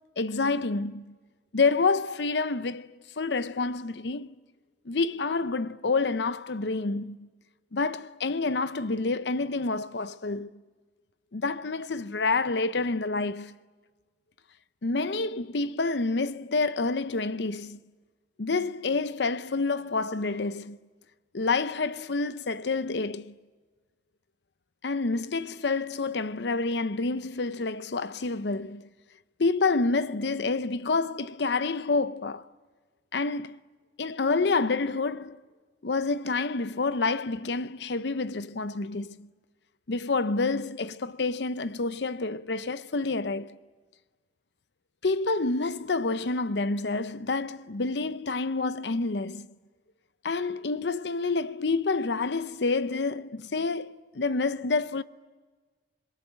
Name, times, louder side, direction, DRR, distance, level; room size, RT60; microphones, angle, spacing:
voice 1, 0.2-1.1 1.5-4.3 4.9-7.3 7.7-10.6 11.3-13.5 14.8-17.8 18.4-20.8 21.3-23.3 24.8-28.9 29.4-32.5 33.1-33.6 34.0-35.4 35.8-39.3 39.9-43.6 45.0-49.5 50.2-55.0, left 3 dB, 80° left, 0.7 m, -28 dB
26.5 x 22.5 x 9.2 m
head